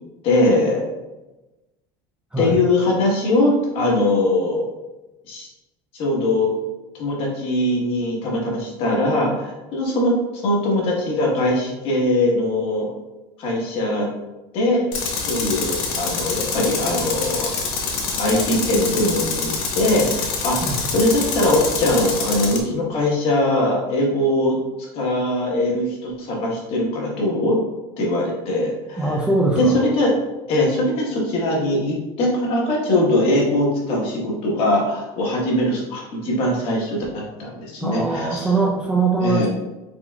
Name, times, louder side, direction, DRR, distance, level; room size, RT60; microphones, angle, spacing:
voice 1, 0.2-0.8 2.4-4.7 5.3-5.5 5.9-6.5 6.9-10.1 10.4-12.9 13.4-14.1 14.5-14.9 15.2-17.5 18.2-24.6 24.9-27.6 28.0-29.2 29.6-30.1 30.5-38.5 39.2-39.5, left 1 dB, 45° left, -2 dB, 1.2 m, -21 dB
Tools, 14.9-22.6, left 4 dB, 70° left, 0.9 m, -26 dB
voice 2, 29.0-29.8 37.8-39.5, right 3 dB, 5° right, -4 dB, 0.4 m, -21 dB
4.6 x 3.7 x 2.3 m, 1.1 s
cardioid pair, 170°, 13 cm